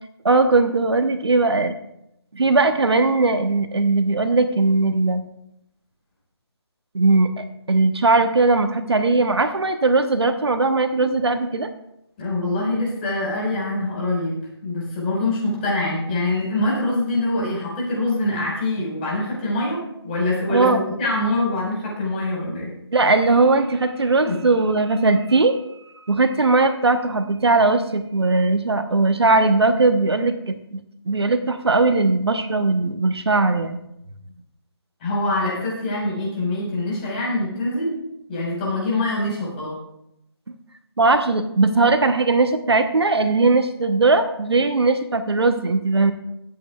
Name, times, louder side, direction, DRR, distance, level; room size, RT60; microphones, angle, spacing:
voice 1, 0.2-1.7 2.3-5.2 6.9-11.7 20.5-20.9 22.9-25.6 26.1-30.8 31.1-33.8 41.0-46.1, right 3 dB, 65° right, 9 dB, 1.0 m, -19 dB
voice 2, 12.2-22.7 24.3-24.4 35.0-38.0 38.3-39.8, left 2 dB, 20° left, -4 dB, 4.9 m, -24 dB
22.0 x 8.6 x 2.4 m, 0.82 s
figure-of-eight pair, 160°, 14 cm